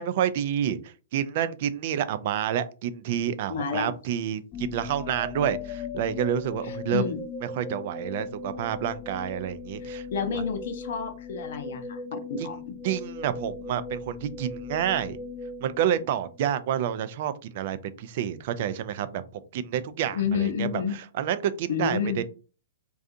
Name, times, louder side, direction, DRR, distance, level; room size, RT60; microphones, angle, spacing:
voice 1, 0.0-7.0 7.5-10.1 12.4-15.2 15.6-22.2, right 10 dB, 55° right, 13 dB, 0.3 m, -29 dB
voice 2, 3.5-3.9 6.6-7.2 9.8-12.7 20.1-20.9 21.7-22.2, left 6 dB, 65° left, 7 dB, 0.7 m, -30 dB
sound 1, 4.5-16.6, left 4 dB, 25° left, 0.5 m, -38 dB
2.6 x 2.3 x 2.5 m, 0.35 s
hypercardioid pair, 125°, 0 cm